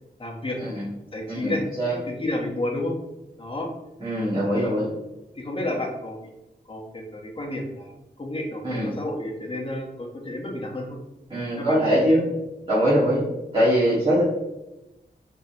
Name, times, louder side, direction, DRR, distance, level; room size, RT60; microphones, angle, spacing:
voice 1, 0.2-0.6 1.1-1.6 2.2-2.9 3.4-3.7 4.6-4.9 5.3-6.2 6.7-7.9 8.2-11.0 11.6-12.2 13.1-13.2, left 1 dB, 30° left, -1 dB, 1.0 m, -31 dB
voice 2, 1.3-1.9 4.0-4.9 8.6-8.9 11.3-12.2 12.7-13.2 13.5-14.2, equal, 35° right, -10 dB, 1.6 m, -22 dB
4.8 x 3.5 x 2.8 m, 0.97 s
wide cardioid pair, 150°, 17 cm